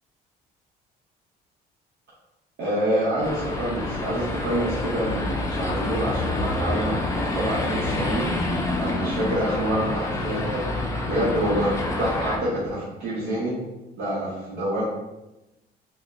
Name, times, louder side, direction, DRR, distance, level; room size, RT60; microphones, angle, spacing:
voice 1, 2.6-7.0 7.3-8.3 8.8-10.6 11.1-13.5 14.0-14.8, right 1 dB, 70° right, -8 dB, 0.9 m, -26 dB
sound 1, 3.2-12.4, left 2 dB, 15° left, 0.4 m, -27 dB
4.0 x 2.1 x 2.5 m, 1.0 s
cardioid pair, 110°, 17 cm